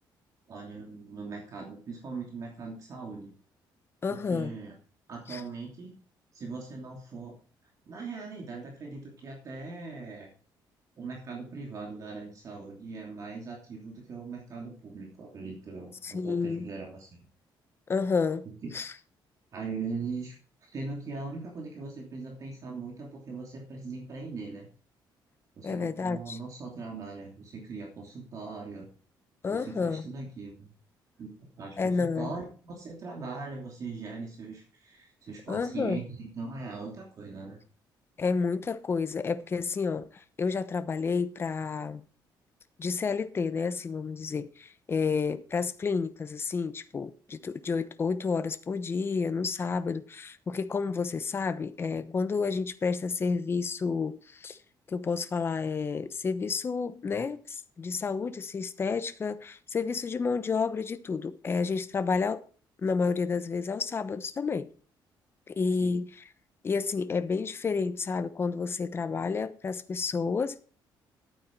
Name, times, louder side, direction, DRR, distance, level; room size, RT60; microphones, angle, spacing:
voice 1, 0.5-3.3 4.1-4.7 5.1-5.9 6.3-7.3 7.8-10.3 11.0-17.1 18.4-18.7 19.5-20.4 20.7-24.7 25.6-28.9 29.5-30.7 31.2-37.6 65.8-66.0, right 4 dB, 45° right, 2.9 m, -40 dB
voice 2, 4.0-4.5 5.3-5.4 16.0-16.7 17.9-18.5 18.7-18.9 25.6-26.4 29.4-30.1 31.8-32.3 35.5-36.0 38.2-42.0 42.8-54.6 54.9-62.4 62.8-64.7 65.5-66.3 66.6-70.6, left 5 dB, 30° left, 0.9 m, -30 dB
11.5 x 9.1 x 4.6 m
cardioid pair, 145°, 8 cm